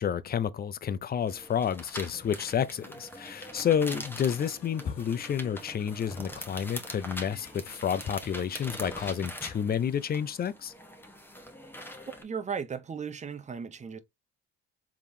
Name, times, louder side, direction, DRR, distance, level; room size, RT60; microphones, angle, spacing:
voice 1, 0.0-10.7, left 8 dB, 30° left, 0.5 m, -30 dB
sound 1, 1.3-12.2, left 1 dB, 5° left, 1.1 m, -43 dB
sound 2, 3.7-9.1, left 7 dB, 75° left, 1.7 m, -53 dB
voice 2, 12.2-14.0, right 6 dB, 25° right, 0.7 m, -36 dB
4.8 x 3.6 x 2.7 m
supercardioid pair, 80°, 30 cm